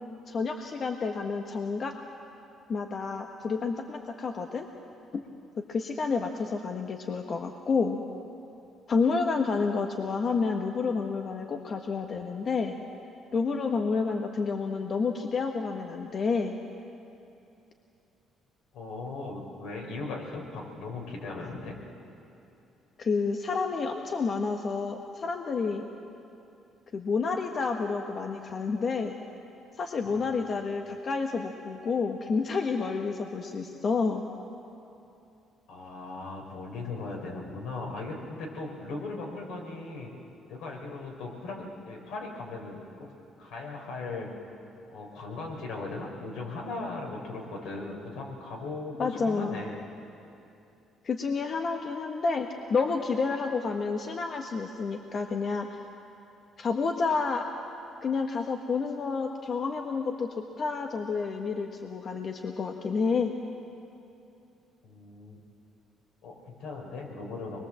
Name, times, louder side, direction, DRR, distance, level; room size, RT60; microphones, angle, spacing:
voice 1, 0.3-1.9 2.7-4.7 5.1-5.2 5.7-8.0 8.9-12.7 13.3-16.6 23.0-25.8 26.9-29.2 29.8-34.2 49.0-49.6 51.0-55.8 56.6-57.4 58.0-60.3 60.6-63.3, left 4 dB, 45° left, 3 dB, 1.3 m, -29 dB
voice 2, 18.7-21.8 30.0-30.3 35.7-40.1 40.5-43.1 43.4-44.3 44.9-49.8 64.8-65.4 66.2-67.6, left 3 dB, 85° left, -1 dB, 5.1 m, -38 dB
24.0 x 21.5 x 7.7 m, 2.8 s
cardioid pair, 100°, 0 cm